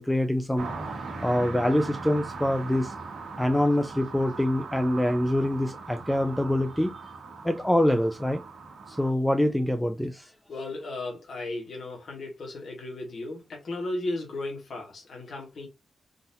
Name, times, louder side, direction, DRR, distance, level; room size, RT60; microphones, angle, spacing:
voice 1, 0.0-2.9 3.4-6.9 7.4-8.4 8.9-10.3, left 1 dB, 5° left, 0.3 m, -25 dB
sound 1, 0.6-9.1, right 4 dB, 80° right, 1.1 m, -39 dB
voice 2, 10.5-15.7, left 2 dB, 55° left, 1.3 m, -35 dB
3.9 x 2.7 x 2.7 m
wide cardioid pair, 160°, 0 cm